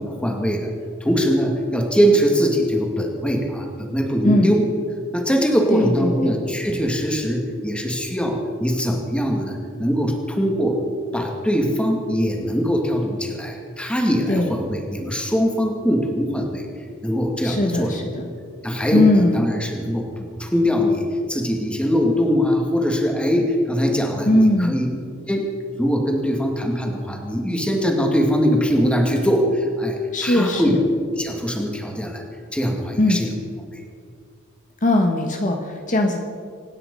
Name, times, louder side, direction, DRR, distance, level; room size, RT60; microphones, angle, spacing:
voice 1, 0.1-0.7 1.0-4.6 5.1-10.8 11.1-16.6 17.0-18.0 18.6-24.9 25.3-25.5 25.8-30.8 31.2-32.2 32.5-33.3, equal, 5° left, 1 dB, 2.2 m, -22 dB
voice 2, 4.2-4.6 5.7-6.3 14.3-14.6 17.4-18.2 18.9-19.4 24.2-24.8 30.1-30.8 33.0-33.2 34.8-36.2, left 1 dB, 40° left, 3 dB, 1.3 m, -19 dB
26.0 x 9.6 x 5.5 m, 2.2 s
head